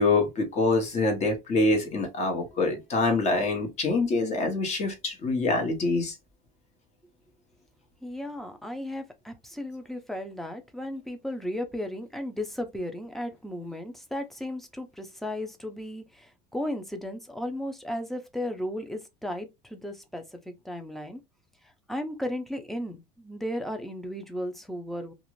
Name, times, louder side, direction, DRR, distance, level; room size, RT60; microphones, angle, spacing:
voice 1, 0.0-6.1, left 3 dB, 35° left, 1.0 m, -25 dB
voice 2, 8.0-21.2 21.9-25.1, left 1 dB, ahead, 0.5 m, -35 dB
2.5 x 2.4 x 3.0 m
cardioid pair, 130°, 19 cm